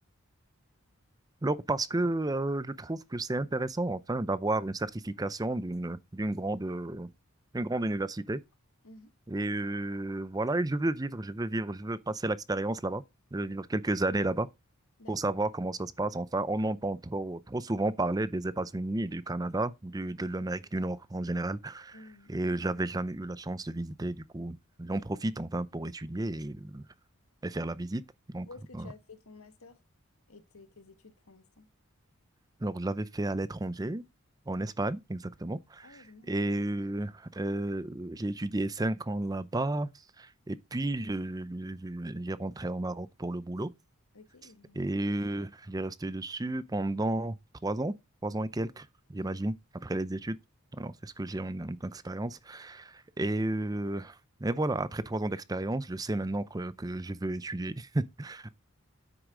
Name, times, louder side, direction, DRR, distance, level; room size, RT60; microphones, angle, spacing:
voice 1, 1.4-7.1 7.5-8.4 9.3-13.0 13.3-14.5 15.1-22.0 22.3-26.8 27.4-28.0 28.3-28.5 28.8-28.9 32.6-34.0 34.5-39.9 40.2-43.7 44.8-47.4 47.6-47.9 48.2-49.5 49.8-50.4 50.7-54.2 54.4-58.5, right 2 dB, 15° right, 0.5 m, -32 dB
voice 2, 21.9-22.3 28.4-29.8 30.3-31.7 35.8-36.4 44.1-44.8 49.2-49.4, left 3 dB, 80° left, 1.7 m, -52 dB
9.8 x 8.0 x 3.8 m
head